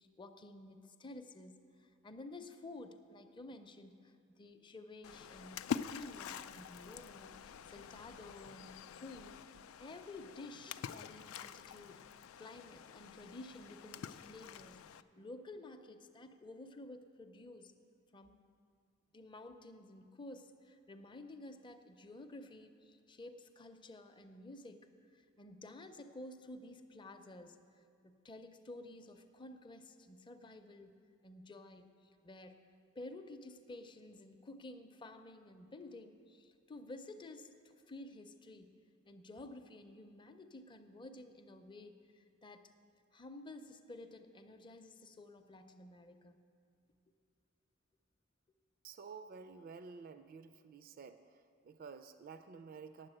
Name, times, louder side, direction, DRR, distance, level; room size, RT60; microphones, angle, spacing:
voice 1, 0.0-14.8 15.2-17.7 18.1-18.4 19.1-31.0 31.2-32.6 32.9-38.7 39.0-42.6 43.1-46.4, left 2 dB, 25° left, 7 dB, 0.5 m, -52 dB
Splash splatter, 5.0-15.0, left 7 dB, 75° left, 0.3 m, -46 dB
voice 2, 48.8-53.1, right 5 dB, 45° right, 9 dB, 0.3 m, -51 dB
9.8 x 7.8 x 7.7 m, 2.2 s
head